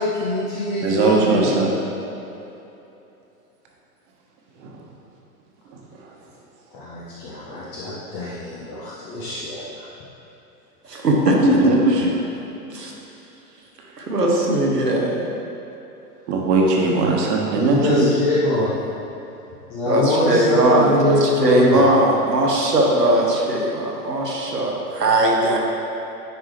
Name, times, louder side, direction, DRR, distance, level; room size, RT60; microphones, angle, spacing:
voice 1, 0.0-1.7 6.7-9.9 17.4-18.8 19.7-22.0, left 2 dB, 15° left, -8 dB, 0.3 m, -23 dB
voice 2, 0.8-1.7 4.6-4.8 5.7-6.1 11.5-12.0 16.3-18.1, right 3 dB, 45° right, -1 dB, 1.3 m, -20 dB
voice 3, 10.8-12.0 12.4-12.9 14.0-15.3 19.9-20.9 21.2-25.6, right 1 dB, 90° right, -2 dB, 1.2 m, -19 dB
10.0 x 4.7 x 3.2 m, 2.9 s
figure-of-eight pair, 95°, 47 cm